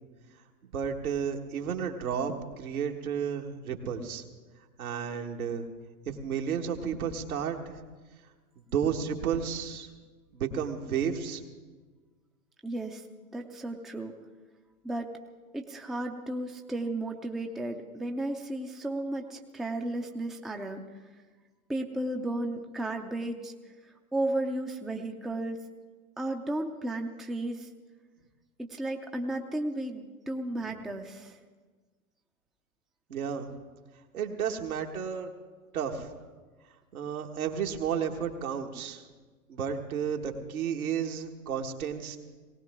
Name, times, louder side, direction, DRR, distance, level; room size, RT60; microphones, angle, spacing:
voice 1, 0.7-4.2 4.8-5.7 6.1-7.8 8.7-9.9 10.3-11.4 33.1-33.5 34.1-35.3 35.7-36.1 36.9-39.0 39.5-42.2, right 7 dB, 75° right, 2 dB, 1.6 m, -32 dB
voice 2, 12.6-13.1 13.3-14.1 14.8-15.1 15.5-20.9 21.7-23.5 23.8-25.6 26.2-27.7 28.6-31.4, right 1 dB, ahead, 3 dB, 0.5 m, -34 dB
19.0 x 18.0 x 3.6 m, 1.4 s
hypercardioid pair, 100°, 43 cm